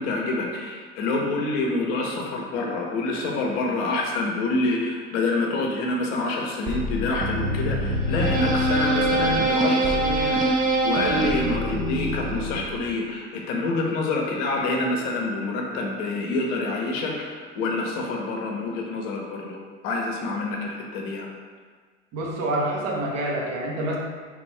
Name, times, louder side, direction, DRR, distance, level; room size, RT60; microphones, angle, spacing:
voice 1, 0.0-21.3, left 2 dB, 55° left, 0 dB, 0.8 m, -27 dB
sound 1, 6.7-12.9, right 1 dB, 25° right, 0.5 m, -24 dB
voice 2, 22.1-24.0, right 1 dB, 45° right, -1 dB, 0.8 m, -27 dB
3.5 x 2.6 x 3.2 m, 1.5 s
figure-of-eight pair, 70°, 37 cm